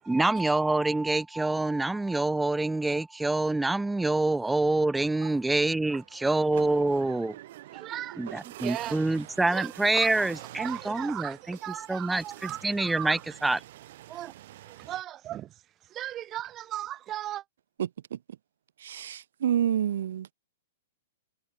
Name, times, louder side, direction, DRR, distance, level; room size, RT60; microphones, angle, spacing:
voice 1, 0.0-7.4 8.2-11.6 11.9-13.6, right 2 dB, 5° right, 0.5 m, -26 dB
voice 2, 5.9-6.4 7.7-9.2 9.5-13.2 14.1-14.3 14.6-17.4, right 12 dB, 20° right, 3.3 m, -38 dB
sound 1, 5.9-15.0, right 14 dB, 55° right, 1.8 m, -46 dB
voice 3, 17.8-18.2 18.8-20.3, right 10 dB, 70° right, 1.5 m, -29 dB
hypercardioid pair, 155°, 0 cm